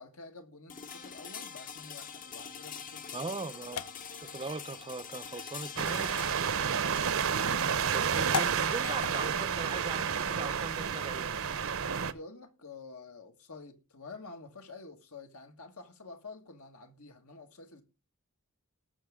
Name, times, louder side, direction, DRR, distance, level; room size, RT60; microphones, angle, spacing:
voice 1, 0.0-3.3 6.5-6.8 12.0-17.8, left 3 dB, 70° left, 1.9 m, -49 dB
sound 1, 0.7-10.6, left 6 dB, 40° left, 1.0 m, -46 dB
sound 2, 2.5-11.1, left 7 dB, 85° left, 0.7 m, -43 dB
voice 2, 3.1-3.8 4.1-6.2 7.8-11.3, right 3 dB, 25° right, 0.6 m, -40 dB
sound 3, 5.8-12.1, right 7 dB, 65° right, 0.9 m, -30 dB
19.5 x 7.0 x 3.7 m
head